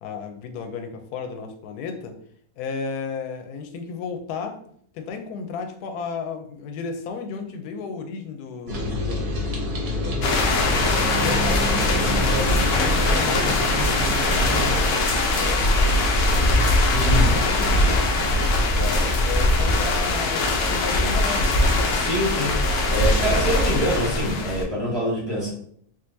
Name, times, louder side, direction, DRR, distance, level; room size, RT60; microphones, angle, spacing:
voice 1, 0.0-2.2 2.6-4.6 4.9-10.5 11.0-14.6 15.1-16.6 17.0-21.6, left 5 dB, 90° left, 5 dB, 1.1 m, -34 dB
sound 1, 8.7-14.8, equal, 90° right, 1.3 m, -27 dB
sound 2, 10.2-24.6, left 2 dB, 65° left, 0.8 m, -21 dB
voice 2, 16.9-17.4 21.9-22.5 22.9-25.5, equal, 25° right, -6 dB, 0.9 m, -25 dB
3.7 x 2.4 x 2.6 m, 0.63 s
omnidirectional pair, 1.6 m